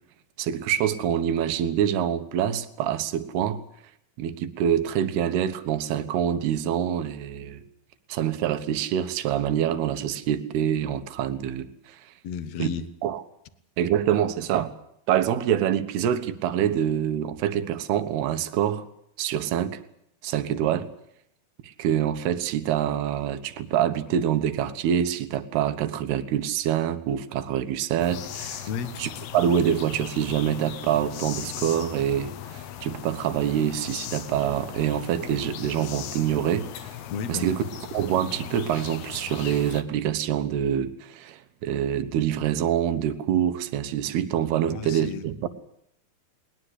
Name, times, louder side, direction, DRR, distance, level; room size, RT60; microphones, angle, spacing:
voice 1, 0.4-3.6 4.2-7.6 8.1-12.1 12.6-12.7 13.0-13.2 13.8-14.7 15.1-18.8 19.2-19.8 20.2-20.9 21.6-28.7 29.0-36.9 37.3-37.6 37.9-45.5, right 10 dB, 85° right, 11 dB, 3.2 m, -26 dB
voice 2, 12.2-12.9 28.7-29.0 37.1-37.5 44.7-45.5, left 6 dB, 60° left, 12 dB, 1.9 m, -33 dB
sound 1, 28.0-39.8, left 10 dB, 85° left, 3.3 m, -38 dB
20.5 x 20.5 x 8.2 m, 0.74 s
omnidirectional pair, 4.5 m